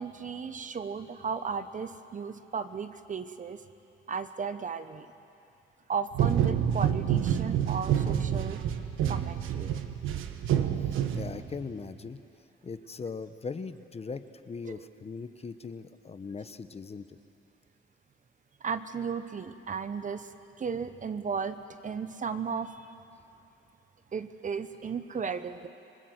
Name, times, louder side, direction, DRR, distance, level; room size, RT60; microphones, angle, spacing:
voice 1, 0.0-3.7 4.1-5.1 5.9-8.6 9.1-9.8 14.7-14.8 18.6-20.3 20.6-22.9 24.1-25.7, right 6 dB, 40° right, 11 dB, 1.1 m, -35 dB
sound 1, 6.1-11.7, right 9 dB, 90° right, 1.3 m, -28 dB
voice 2, 10.8-12.2 12.6-17.2, left 4 dB, 30° left, 11 dB, 1.0 m, -40 dB
27.0 x 19.5 x 8.0 m, 2.7 s
cardioid pair, 90°, 20 cm